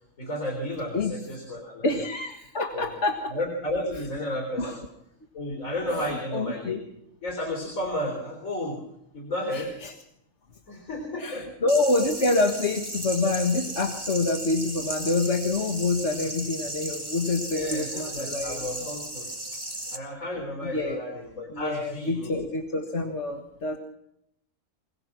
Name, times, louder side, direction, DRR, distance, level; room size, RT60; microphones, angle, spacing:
voice 1, 0.2-1.9 2.7-2.9 3.3-4.8 5.3-6.8 7.2-8.8 9.1-9.7 10.7-11.5 17.5-19.6 19.9-22.3, left 1 dB, 90° left, 2 dB, 4.3 m, -32 dB
voice 2, 1.8-3.3 4.6-4.8 5.9-6.8 9.5-9.9 11.2-18.7 20.6-21.0 21.5-23.8, left 3 dB, 60° left, 3 dB, 1.9 m, -27 dB
sound 1, 11.7-20.0, right 1 dB, 15° right, 2.3 m, -35 dB
25.0 x 18.5 x 6.0 m, 0.81 s
omnidirectional pair, 1.4 m